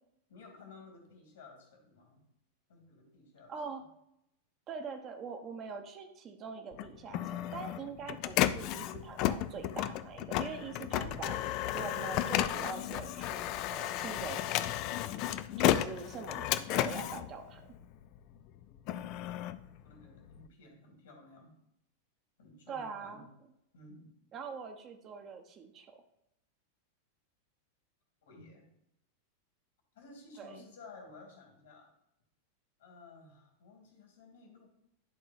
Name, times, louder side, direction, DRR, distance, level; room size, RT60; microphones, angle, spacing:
voice 1, 0.3-2.2 2.7-3.5 19.8-21.5 22.4-23.3 23.7-24.1 28.2-28.7 29.9-31.9 32.8-34.7, left 3 dB, 60° left, 2 dB, 2.4 m, -54 dB
voice 2, 3.5-3.8 4.7-11.4 11.7-14.7 15.6-17.6 22.7-23.3 24.3-26.0 30.4-30.6, right 5 dB, 30° right, 5 dB, 0.9 m, -43 dB
Printer, 6.7-18.2 18.6-20.5, left 13 dB, 40° left, 0.3 m, -33 dB
11.0 x 3.9 x 4.1 m, 0.81 s
figure-of-eight pair, 90°, 0 cm